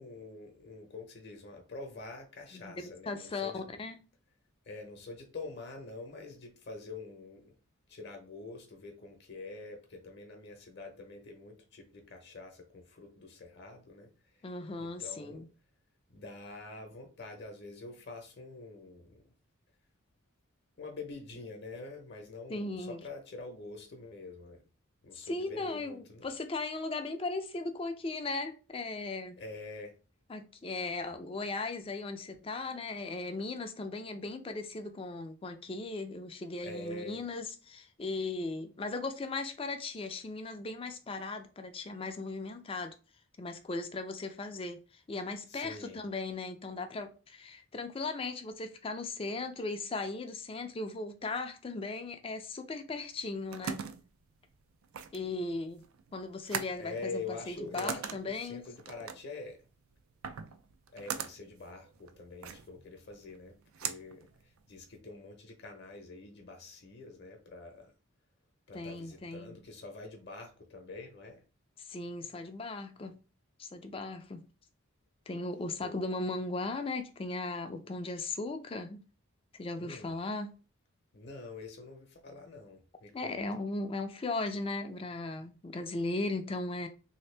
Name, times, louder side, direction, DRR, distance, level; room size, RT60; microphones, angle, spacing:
voice 1, 0.0-3.6 4.7-7.5 7.9-14.5 14.8-15.4 16.1-19.2 20.8-24.6 25.0-26.3 29.4-30.0 36.6-37.2 45.5-46.0 56.8-59.6 60.9-63.5 63.8-64.3 64.7-67.9 68.7-71.4 75.8-76.0 79.8-80.1 81.1-83.4, left 3 dB, 50° left, 0.7 m, -46 dB
voice 2, 2.5-4.0 14.4-15.5 22.5-23.0 25.2-29.4 30.3-42.9 43.4-44.8 45.1-53.8 55.1-55.8 56.1-58.6 68.7-69.6 71.9-73.2 73.6-74.4 75.3-79.0 79.6-80.5 83.1-86.9, left 3 dB, 25° left, 0.4 m, -37 dB
sound 1, 53.1-65.0, right 7 dB, 80° right, 0.4 m, -42 dB
3.3 x 2.7 x 3.2 m
head